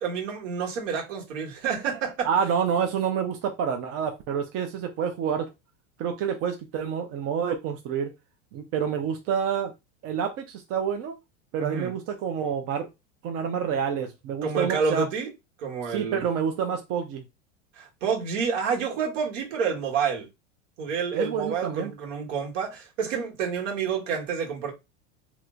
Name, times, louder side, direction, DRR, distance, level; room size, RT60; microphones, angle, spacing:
voice 1, 0.0-2.3 11.6-11.9 14.4-15.3 15.6-16.2 17.7-20.3 20.8-24.7, right 6 dB, 70° right, 1.4 m, -29 dB
voice 2, 2.2-5.5 6.0-8.1 8.5-9.7 10.0-11.1 11.5-12.9 13.2-15.1 15.9-17.2 21.1-21.9, right 7 dB, 40° right, 0.6 m, -28 dB
3.0 x 2.1 x 3.7 m
supercardioid pair, 125°, 39 cm